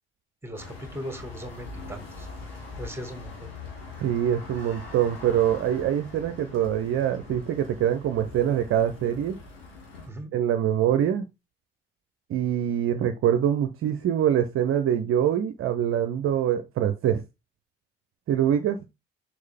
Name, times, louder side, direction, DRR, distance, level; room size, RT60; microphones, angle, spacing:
voice 1, 0.4-2.5 2.8-3.5 10.1-10.3, equal, 10° right, 6 dB, 2.0 m, -39 dB
sound 1, 0.5-10.1, left 3 dB, 80° left, 1.5 m, -42 dB
voice 2, 4.0-9.4 10.3-11.3 12.3-17.2 18.3-18.8, right 10 dB, 45° right, 8 dB, 0.7 m, -24 dB
6.4 x 4.3 x 3.5 m, 0.23 s
figure-of-eight pair, 40°, 30 cm